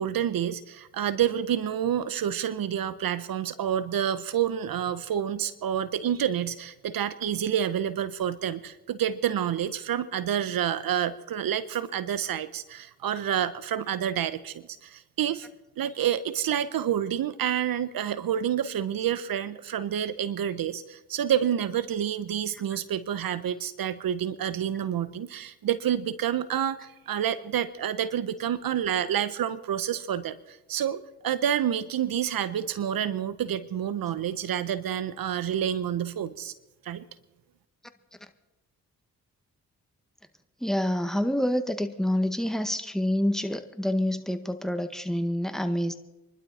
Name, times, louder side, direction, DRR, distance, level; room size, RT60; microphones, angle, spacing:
voice 1, 0.0-15.5 15.8-36.5 36.8-37.1, right 9 dB, 70° right, 16 dB, 0.8 m, -28 dB
voice 2, 40.6-45.9, left 1 dB, ahead, 8 dB, 1.7 m, -27 dB
26.0 x 12.0 x 4.2 m, 1.0 s
supercardioid pair, 45°, 36 cm